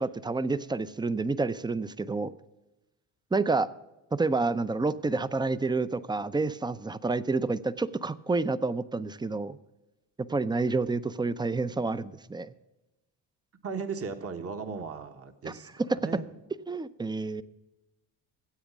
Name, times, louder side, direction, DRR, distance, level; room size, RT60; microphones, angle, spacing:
voice 1, 0.0-2.3 3.3-3.7 4.1-9.6 10.3-12.5 15.5-15.6 16.7-17.4, right 3 dB, 10° right, 15 dB, 0.5 m, -29 dB
voice 2, 13.6-16.3, right 5 dB, 35° right, 7 dB, 1.3 m, -37 dB
15.5 x 8.0 x 6.1 m, 1.0 s
supercardioid pair, 80°, 38 cm